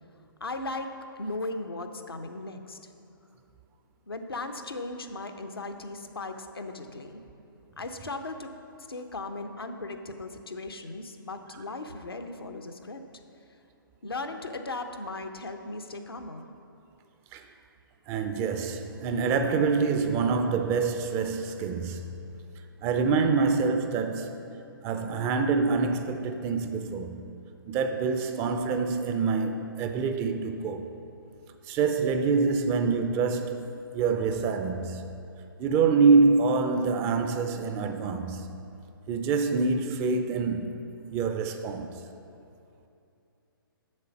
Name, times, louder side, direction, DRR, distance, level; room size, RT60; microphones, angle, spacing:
voice 1, 0.4-0.9 1.2-2.8 4.1-7.2 7.8-8.5 8.9-13.0 14.0-16.4, left 2 dB, 90° left, 0.8 m, -37 dB
voice 2, 18.1-22.1 22.8-24.6 24.8-27.2 27.7-30.9 31.7-35.1 35.6-38.5 39.1-42.0, right 4 dB, 20° right, 0.4 m, -26 dB
7.7 x 6.8 x 5.9 m
figure-of-eight pair, 135°, 12 cm